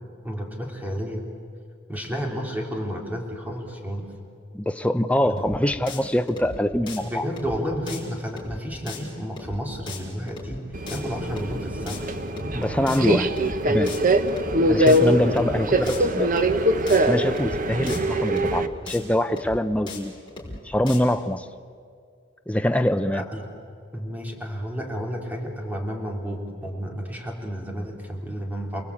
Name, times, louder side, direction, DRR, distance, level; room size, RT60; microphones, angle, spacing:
voice 1, 0.2-1.3 1.9-4.1 5.2-5.5 7.0-10.6 10.9-12.0 23.1-23.5 23.9-28.8, equal, 10° right, 1 dB, 3.3 m, -31 dB
voice 2, 4.5-7.3 12.5-13.3 13.7-13.9 14.7-16.3 16.9-20.1 20.6-21.4 22.5-23.2, left 1 dB, 5° left, 8 dB, 0.6 m, -24 dB
sound 1, 5.4-5.6 5.9-6.0 6.3-6.6 6.9-7.0 7.4-7.6 7.9-8.0 8.3-8.6 8.9-9.0 9.4-9.6 9.9-10.0 10.3-10.6 10.9-11.0 11.4-11.6 11.9-12.0 12.3-12.6 12.9-13.0 13.4-13.6 13.9-14.0 14.3-14.6 14.9-15.0 15.4-15.6 15.9-16.0 16.3-16.6 16.9-17.0 17.4-17.6 17.9-18.0 18.3-18.6 18.9-19.0 19.4-19.6 19.9-20.0 20.3-20.6 20.9-21.0, left 3 dB, 25° left, 5.2 m, -37 dB
Subway metro underground, 10.7-18.7, right 1 dB, 45° right, 1.1 m, -22 dB
29.0 x 20.0 x 8.5 m, 2.3 s
head